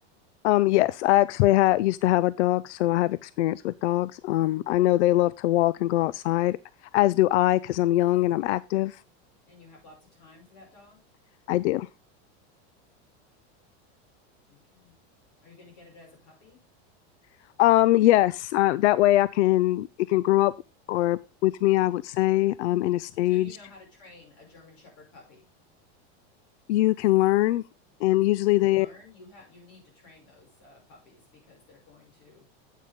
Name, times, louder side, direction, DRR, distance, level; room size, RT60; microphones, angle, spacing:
voice 1, 0.4-6.6 6.9-9.0 11.5-11.9 17.6-20.5 20.9-23.5 26.7-27.6 28.0-28.9, left 16 dB, 90° left, 0.5 m, -22 dB
voice 2, 9.5-11.0 14.5-15.0 15.4-16.6 23.2-25.5 28.5-32.5, left 3 dB, 40° left, 5.9 m, -53 dB
9.4 x 8.4 x 3.7 m
supercardioid pair, 175°, 33 cm